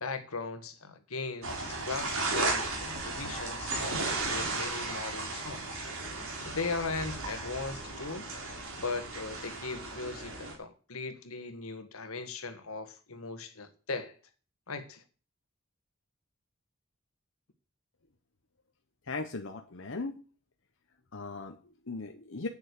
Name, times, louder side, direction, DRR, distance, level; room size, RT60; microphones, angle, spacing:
voice 1, 0.0-5.8 6.4-8.3 8.8-14.1 14.7-15.0, left 3 dB, 85° left, 1.6 m, -38 dB
sound 1, 1.4-10.5, right 2 dB, 75° right, 3.7 m, -35 dB
voice 2, 19.1-20.2 21.1-22.5, left 3 dB, 65° left, 1.0 m, -38 dB
8.8 x 7.2 x 8.3 m
head